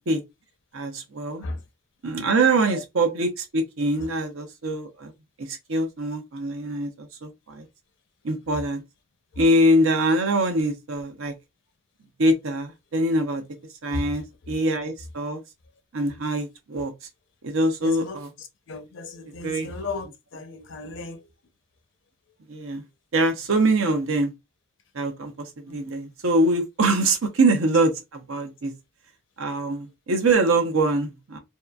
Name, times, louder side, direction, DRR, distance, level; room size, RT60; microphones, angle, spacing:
voice 1, 0.7-1.5 2.0-5.1 5.4-7.7 8.2-8.8 9.4-11.3 12.2-13.4 13.8-15.4 15.9-16.9 17.4-18.3 19.4-19.7 22.5-22.8 23.1-24.3 24.9-28.7 29.4-31.4, right 2 dB, 75° right, 0.7 m, -23 dB
voice 2, 17.8-21.3 25.7-25.8, left 3 dB, 60° left, 0.6 m, -36 dB
2.7 x 2.4 x 2.2 m
head